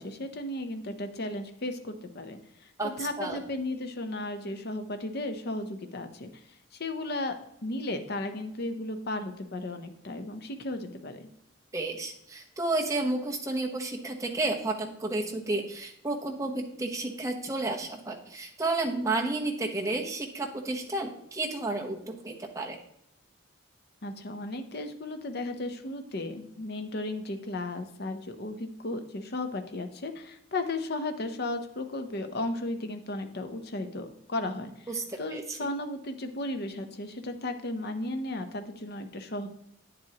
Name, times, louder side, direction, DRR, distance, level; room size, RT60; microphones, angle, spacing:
voice 1, 0.0-6.3 6.7-11.3 24.0-34.9 35.2-39.5, left 2 dB, 50° left, 7 dB, 0.7 m, -35 dB
voice 2, 11.7-22.8 34.9-35.7, right 2 dB, 15° right, 1 dB, 0.9 m, -31 dB
9.1 x 7.6 x 2.9 m, 0.77 s
head